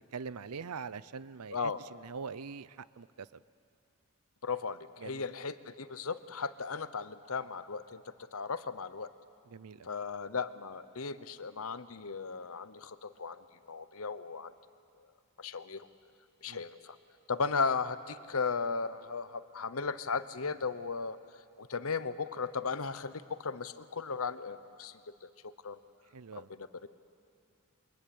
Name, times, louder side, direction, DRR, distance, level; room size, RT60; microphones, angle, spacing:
voice 1, 0.1-3.3 5.0-5.3 9.5-9.9 16.5-16.6 26.1-26.5, right 5 dB, 85° right, 18 dB, 0.6 m, -43 dB
voice 2, 1.5-1.8 4.4-8.0 8.3-9.1 9.8-14.5 15.4-15.9 16.4-17.0 17.3-21.2 21.6-25.8 26.3-26.7, left 5 dB, 65° left, 13 dB, 0.9 m, -36 dB
27.5 x 24.0 x 8.6 m, 2.4 s
head